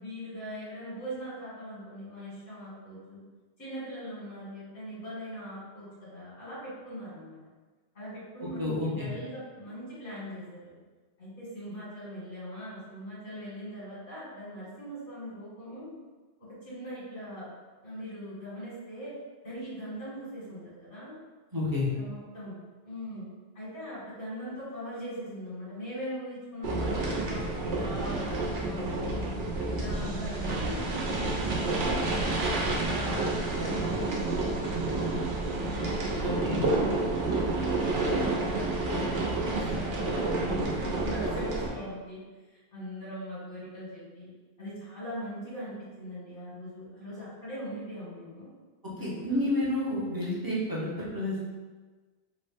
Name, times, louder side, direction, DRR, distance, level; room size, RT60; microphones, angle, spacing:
voice 1, 0.0-3.2 3.6-7.4 7.9-10.8 11.2-15.9 16.6-17.5 17.8-19.1 19.4-21.1 21.9-23.3 23.5-29.3 29.7-31.3 31.8-34.4 34.9-35.0 35.6-36.9 37.2-42.2 42.7-44.3 44.6-48.5 49.0-49.4, equal, 90° left, -10 dB, 1.9 m, -40 dB
voice 2, 8.4-9.1 21.5-21.9 36.2-36.6 49.0-51.4, left 1 dB, 30° right, -6 dB, 0.4 m, -30 dB
sound 1, 26.6-41.7, right 2 dB, 80° right, 1.0 m, -29 dB
3.5 x 2.0 x 3.3 m, 1.3 s
omnidirectional pair, 1.2 m